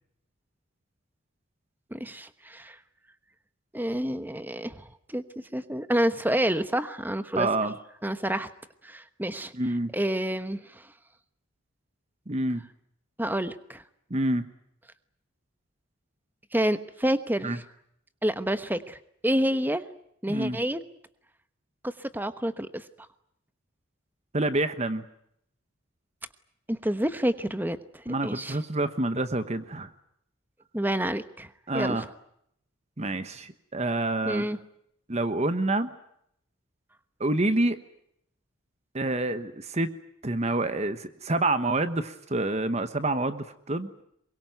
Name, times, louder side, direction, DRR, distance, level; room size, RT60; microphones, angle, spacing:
voice 1, 1.9-2.8 3.7-5.2 5.5-7.5 8.0-8.5 8.8-9.5 9.9-10.6 13.2-13.8 16.5-17.6 18.2-19.0 19.2-19.8 20.2-20.8 21.8-22.8 26.7-28.6 30.7-32.0 34.2-34.6, right 1 dB, 10° right, 12 dB, 1.1 m, -28 dB
voice 2, 7.3-7.7 9.5-9.9 12.3-12.6 14.1-14.5 17.4-17.6 20.3-20.6 24.3-25.0 28.1-29.9 31.7-32.1 33.0-34.5 35.1-35.9 37.2-37.8 38.9-39.9 40.2-43.9, right 2 dB, 30° right, 11 dB, 1.1 m, -27 dB
23.5 x 22.0 x 9.2 m, 0.73 s
head